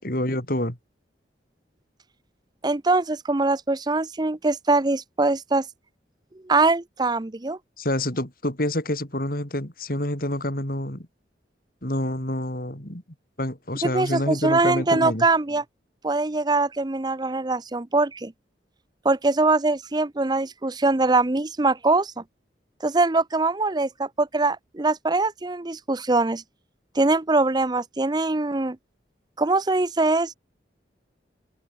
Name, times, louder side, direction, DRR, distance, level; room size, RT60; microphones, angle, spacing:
voice 1, 0.0-0.8 7.8-11.1 11.8-13.0 13.4-15.3, left 1 dB, 50° left, 5.0 m, -27 dB
voice 2, 2.6-5.6 6.4-7.6 13.8-15.6 16.0-18.3 19.0-22.2 22.8-26.4 27.0-28.8 29.4-30.4, right 3 dB, 25° right, 0.7 m, -22 dB
open air
head